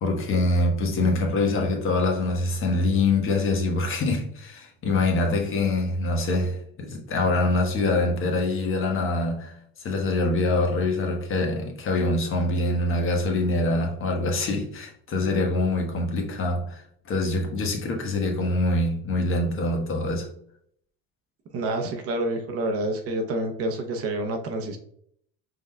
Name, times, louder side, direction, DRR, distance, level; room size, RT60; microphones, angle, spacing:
voice 1, 0.0-20.3, left 2 dB, 45° left, 1.2 m, -24 dB
voice 2, 21.5-24.8, right 2 dB, 50° right, 0.8 m, -28 dB
4.9 x 3.8 x 2.2 m
supercardioid pair, 110°, 30 cm